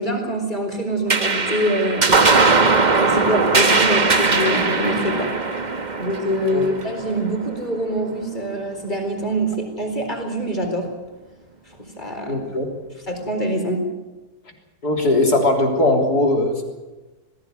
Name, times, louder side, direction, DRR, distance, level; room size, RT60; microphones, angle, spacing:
voice 1, 0.0-2.1 2.8-5.3 6.0-10.9 11.8-12.4 13.1-13.8, right 1 dB, 30° left, 4 dB, 4.3 m, -24 dB
sound 1, 1.1-7.9, right 3 dB, 30° right, 1.4 m, -19 dB
voice 2, 12.3-12.7 14.8-16.6, left 2 dB, 75° left, 2 dB, 4.1 m, -19 dB
21.0 x 16.0 x 9.5 m, 1.2 s
omnidirectional pair, 1.7 m